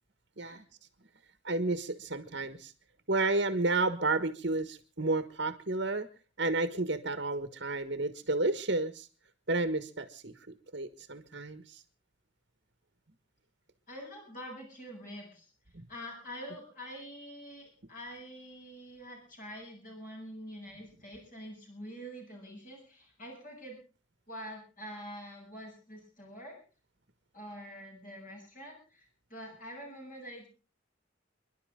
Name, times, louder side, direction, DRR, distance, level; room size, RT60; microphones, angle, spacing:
voice 1, 1.4-2.7 3.1-6.1 6.4-9.1 9.5-10.3 10.7-11.8 15.7-15.8, right 2 dB, 55° right, 10 dB, 1.5 m, -31 dB
voice 2, 13.9-15.5 15.9-23.8 24.3-26.6 27.3-30.5, equal, 40° left, 0 dB, 7.9 m, -46 dB
30.0 x 11.5 x 3.8 m, 0.37 s
head